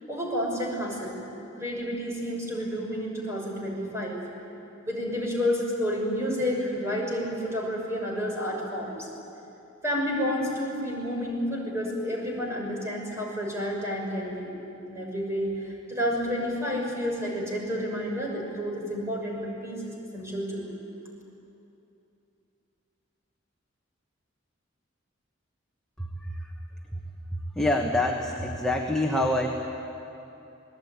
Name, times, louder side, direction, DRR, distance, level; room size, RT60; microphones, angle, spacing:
voice 1, 0.1-1.2 1.6-4.2 4.8-9.1 9.8-14.5 14.9-20.7, equal, 15° right, -2 dB, 6.4 m, -30 dB
voice 2, 26.0-26.5 26.9-27.0 27.3-29.5, left 1 dB, 5° left, -1 dB, 1.4 m, -27 dB
28.0 x 20.0 x 9.6 m, 2.9 s
head